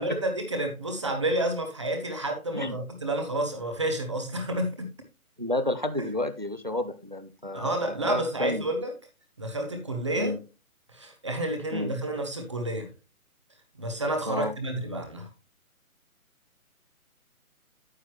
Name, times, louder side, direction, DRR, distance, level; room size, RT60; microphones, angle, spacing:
voice 1, 0.0-4.9 6.0-6.1 7.5-8.9 9.4-10.4 10.9-12.9 13.8-15.3, right 1 dB, 20° right, 0.8 m, -30 dB
voice 2, 5.4-8.6 10.2-10.4 11.7-11.9 14.3-14.5, left 1 dB, 35° right, 0.4 m, -31 dB
9.4 x 7.6 x 2.9 m
hypercardioid pair, 170°, 43 cm